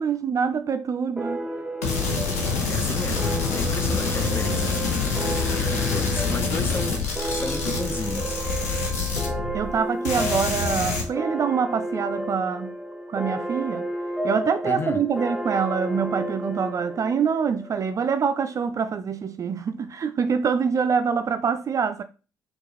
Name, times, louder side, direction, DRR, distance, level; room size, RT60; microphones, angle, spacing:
voice 1, 0.0-1.4 9.5-12.7 13.1-13.9 14.2-22.0, right 6 dB, 40° right, 0.4 m, -25 dB
sound 1, 1.2-18.3, right 1 dB, 10° right, 0.8 m, -32 dB
sound 2, 1.8-9.8 10.0-11.0, left 4 dB, 85° left, 0.7 m, -26 dB
voice 2, 2.6-5.0 5.5-8.4 9.0-9.2 14.6-15.0, left 3 dB, 25° left, 0.8 m, -33 dB
4.5 x 2.5 x 3.1 m
hypercardioid pair, 45°, 8 cm